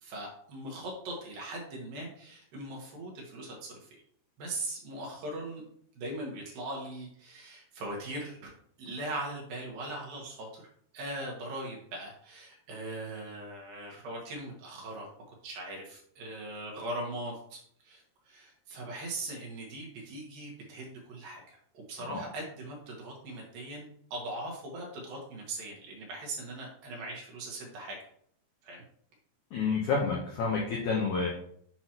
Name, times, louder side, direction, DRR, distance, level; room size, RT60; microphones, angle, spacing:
voice 1, 0.0-4.0 4.4-5.6 6.0-8.5 8.8-15.1 15.4-28.0 28.6-28.8, right 1 dB, 65° right, -1 dB, 2.7 m, -40 dB
voice 2, 29.5-31.3, left 4 dB, 80° left, -2 dB, 1.7 m, -29 dB
7.5 x 5.9 x 2.9 m, 0.64 s
omnidirectional pair, 5.0 m